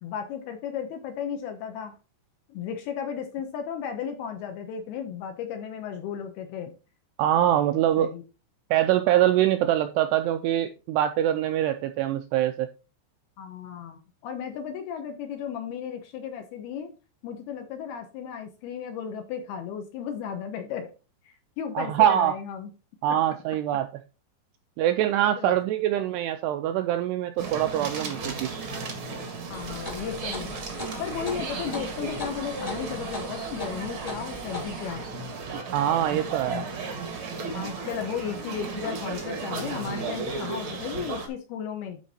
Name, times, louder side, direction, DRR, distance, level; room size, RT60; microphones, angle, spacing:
voice 1, 0.0-2.0 2.5-6.7 8.0-8.2 13.4-16.9 17.2-20.9 21.2-22.7 23.1-23.4 25.4-25.5 29.5-30.5 31.0-35.0 36.5-36.7 37.5-42.0, left 8 dB, 70° left, 6 dB, 2.6 m, -35 dB
voice 2, 7.2-8.1 8.7-12.7 21.8-22.3 23.0-23.9 24.8-28.5 35.7-36.6, right 12 dB, 90° right, 7 dB, 2.4 m, -24 dB
sound 1, 27.4-41.3, right 4 dB, 65° right, 1.2 m, -35 dB
sound 2, 29.5-34.9, left 2 dB, 55° left, 0.4 m, -39 dB
11.5 x 4.6 x 4.2 m, 0.32 s
omnidirectional pair, 5.3 m